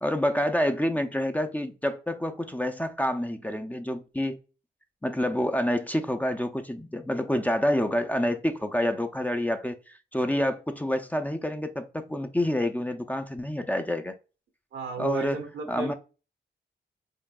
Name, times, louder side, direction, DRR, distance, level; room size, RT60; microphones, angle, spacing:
voice 1, 0.0-4.4 5.0-14.1 15.0-15.4 15.7-15.9, left 1 dB, 10° left, 0.4 m, -28 dB
voice 2, 14.7-15.9, right 6 dB, 90° right, 0.9 m, -34 dB
4.6 x 2.6 x 2.3 m
cardioid pair, 65°, 18 cm